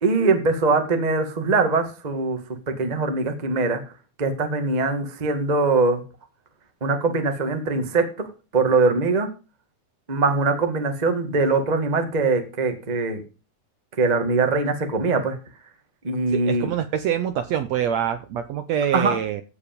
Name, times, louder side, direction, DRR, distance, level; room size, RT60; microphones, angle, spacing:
voice 1, 0.0-2.4 2.7-3.8 4.2-6.0 6.8-8.0 8.5-9.3 10.1-13.2 14.0-15.3 16.0-16.7 18.9-19.2, right 3 dB, 30° right, 6 dB, 0.8 m, -22 dB
voice 2, 16.3-19.4, right 9 dB, 75° right, 9 dB, 1.7 m, -25 dB
15.5 x 5.1 x 5.2 m, 0.33 s
omnidirectional pair, 3.9 m